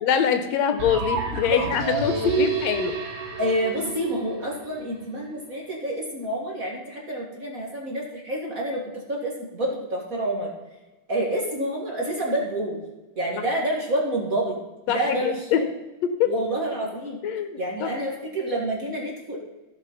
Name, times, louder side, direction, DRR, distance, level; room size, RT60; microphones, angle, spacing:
voice 1, 0.0-3.0 14.9-15.6 16.0-16.3 17.2-17.9, left 8 dB, 75° left, 9 dB, 1.9 m, -24 dB
sound 1, 0.8-4.7, right 4 dB, 50° right, 0.8 m, -29 dB
voice 2, 3.4-10.5 11.1-12.8 13.2-14.6 14.9-15.6 16.2-17.2 17.6-19.4, right 1 dB, 35° right, -2 dB, 1.9 m, -28 dB
14.5 x 6.1 x 5.5 m, 1.1 s
omnidirectional pair, 3.3 m